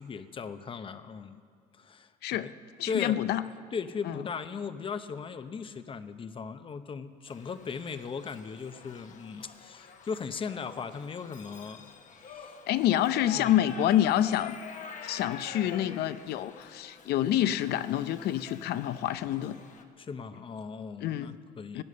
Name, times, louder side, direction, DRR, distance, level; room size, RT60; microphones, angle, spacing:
voice 1, 0.0-1.4 1.7-2.5 2.9-3.2 3.7-11.9 12.3-12.5 12.9-13.0 13.3-13.6 20.0-21.8, left 5 dB, 30° left, 11 dB, 0.7 m, -38 dB
voice 2, 2.8-3.4 4.0-4.2 12.7-14.6 15.0-19.6 21.0-21.4 21.7-21.8, left 12 dB, 75° left, 14 dB, 0.6 m, -27 dB
Shout / Livestock farm animals working animals, 7.3-19.8, left 6 dB, 50° left, 1.1 m, -46 dB
16.0 x 9.6 x 6.7 m, 2.2 s
cardioid pair, 110°, 17 cm